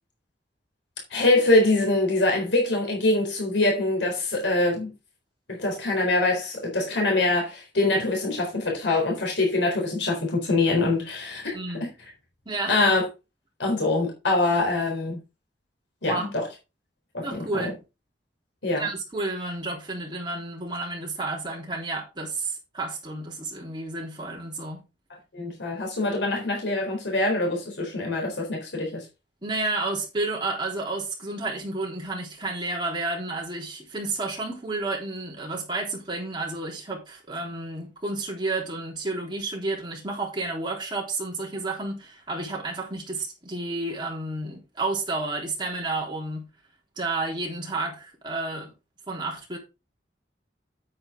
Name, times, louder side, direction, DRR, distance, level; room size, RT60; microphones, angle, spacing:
voice 1, 1.1-4.9 5.5-11.5 11.8-11.9 12.7-13.0 13.6-15.2 16.0-16.5 17.1-17.7 18.6-18.9 25.3-29.0, left 2 dB, 85° left, 4.0 m, -24 dB
voice 2, 11.5-11.9 12.5-12.8 16.0-16.3 17.2-17.8 18.8-24.8 29.4-46.5 47.0-48.7 49.1-49.6, right 2 dB, 25° right, 3.5 m, -31 dB
8.7 x 8.6 x 3.8 m
head